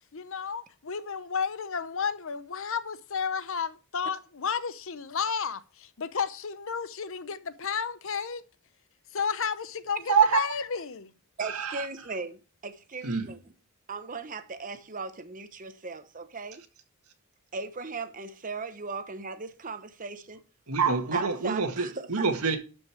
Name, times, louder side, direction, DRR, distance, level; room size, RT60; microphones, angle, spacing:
voice 1, 0.1-8.4 9.1-11.1, left 6 dB, 60° left, 0.8 m, -32 dB
voice 2, 10.1-10.5 11.4-11.9 13.0-13.3 20.7-22.6, right 5 dB, 85° right, 1.7 m, -26 dB
voice 3, 11.4-13.4 13.9-16.6 17.5-20.4 21.1-22.3, right 4 dB, 35° right, 1.0 m, -38 dB
12.0 x 5.4 x 4.5 m
head